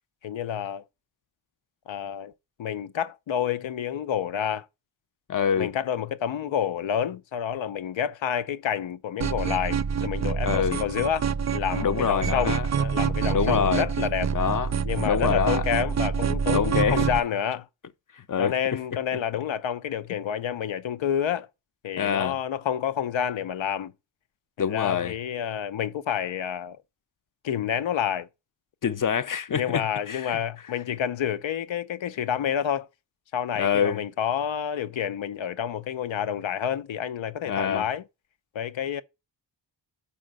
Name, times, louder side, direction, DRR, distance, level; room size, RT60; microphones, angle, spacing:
voice 1, 0.2-0.8 1.9-2.3 2.6-4.7 5.6-14.3 14.8-17.7 18.4-21.5 21.8-23.9 24.6-26.8 27.4-28.3 29.5-32.9 33.3-38.0 38.5-39.0, left 9 dB, 90° left, 0.7 m, -29 dB
voice 2, 5.3-5.7 10.4-10.8 11.8-12.7 13.3-13.9 14.3-14.7 15.0-15.6 16.5-17.0 18.2-18.5 22.0-22.3 24.6-25.1 28.8-30.4 33.6-34.0 37.4-37.9, left 7 dB, 45° left, 0.7 m, -25 dB
sound 1, 9.2-17.2, right 7 dB, 40° right, 0.5 m, -27 dB
5.8 x 5.0 x 6.3 m
wide cardioid pair, 95°, 45 cm